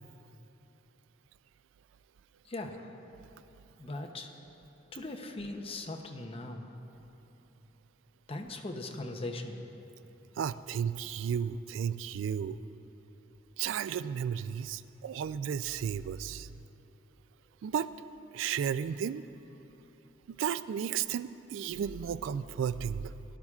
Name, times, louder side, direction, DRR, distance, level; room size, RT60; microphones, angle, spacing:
voice 1, 2.4-2.9 3.8-4.3 4.9-6.7 8.3-9.6, left 2 dB, 30° left, 4 dB, 0.7 m, -39 dB
voice 2, 10.4-12.6 13.6-16.5 17.6-17.9 18.3-19.2 20.3-23.1, right 8 dB, 85° right, 16 dB, 0.3 m, -33 dB
17.5 x 11.5 x 2.4 m, 3.0 s
head